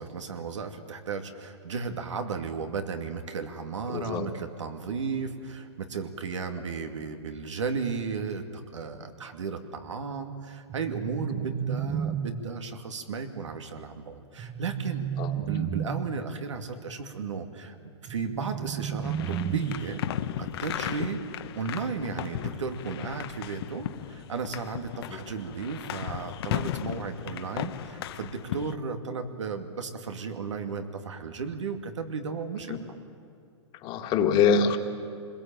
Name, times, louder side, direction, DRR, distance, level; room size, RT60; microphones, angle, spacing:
voice 1, 0.0-17.8 18.0-20.0 20.4-32.8, right 5 dB, 90° right, 6 dB, 2.5 m, -34 dB
voice 2, 3.9-4.3 15.2-15.3 32.7-32.8 33.8-34.8, left 6 dB, 30° left, 6 dB, 1.8 m, -24 dB
sound 1, 10.7-12.7 14.4-16.3 18.1-20.1, right 8 dB, 20° right, 0.7 m, -32 dB
sound 2, 19.0-28.8, left 11 dB, 55° left, 1.1 m, -36 dB
25.5 x 21.0 x 9.0 m, 2.6 s
hypercardioid pair, 140°, 15 cm